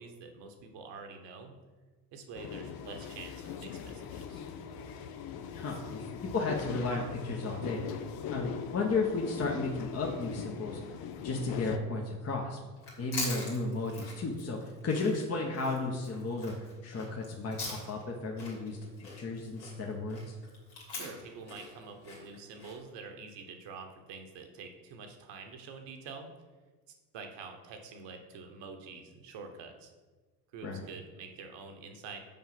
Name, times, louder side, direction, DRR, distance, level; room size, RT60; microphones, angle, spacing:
voice 1, 0.0-1.5 2.1-4.4 13.0-13.3 20.9-26.3 27.1-29.9 30.5-32.2, right 4 dB, 60° right, 5 dB, 1.3 m, -47 dB
sound 1, 2.3-11.8, left 7 dB, 50° left, 0.7 m, -41 dB
voice 2, 5.5-6.0 6.3-7.8 8.3-10.8 11.2-12.6 13.0-16.5 16.8-18.8 19.2-20.3 30.6-30.8, left 3 dB, 30° left, -1 dB, 1.1 m, -33 dB
Chewing mastication, 12.8-18.1 18.4-22.8, left 3 dB, 80° left, 2.4 m, -43 dB
5.4 x 4.7 x 5.9 m, 1.3 s
hypercardioid pair, 65°, 47 cm